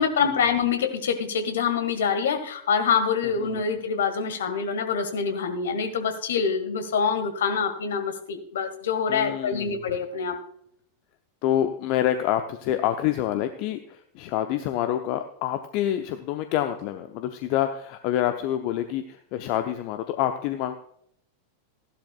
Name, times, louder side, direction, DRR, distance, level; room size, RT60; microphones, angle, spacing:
voice 1, 0.0-10.4, left 6 dB, 60° left, 8 dB, 1.7 m, -25 dB
voice 2, 3.2-3.6 9.1-9.8 11.4-20.8, left 11 dB, 45° left, 8 dB, 0.7 m, -27 dB
15.5 x 11.5 x 2.4 m, 0.68 s
figure-of-eight pair, 90°, 0 cm